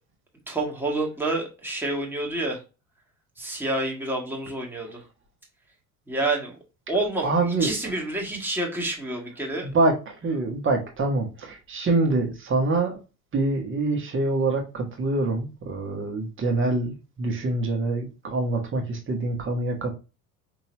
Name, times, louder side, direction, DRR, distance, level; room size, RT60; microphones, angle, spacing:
voice 1, 0.5-2.6 3.4-5.0 6.1-6.5 6.9-9.7, right 2 dB, 5° right, 1.6 m, -28 dB
voice 2, 7.2-7.7 9.6-13.0 13.3-19.9, right 2 dB, 25° right, 1.5 m, -25 dB
5.5 x 3.0 x 3.0 m
figure-of-eight pair, 65°, 45 cm